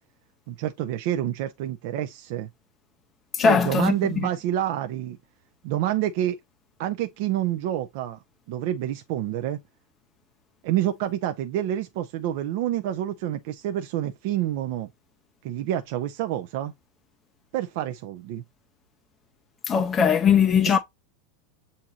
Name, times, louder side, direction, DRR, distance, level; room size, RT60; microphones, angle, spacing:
voice 1, 0.5-2.5 3.4-5.2 5.6-6.4 6.8-8.2 8.5-9.6 10.6-14.9 15.4-16.7 17.5-18.4, right 12 dB, 50° right, 0.5 m, -28 dB
voice 2, 3.3-4.3 19.7-20.8, left 7 dB, 15° left, 0.4 m, -20 dB
7.5 x 2.8 x 2.4 m
supercardioid pair, 175°, 0 cm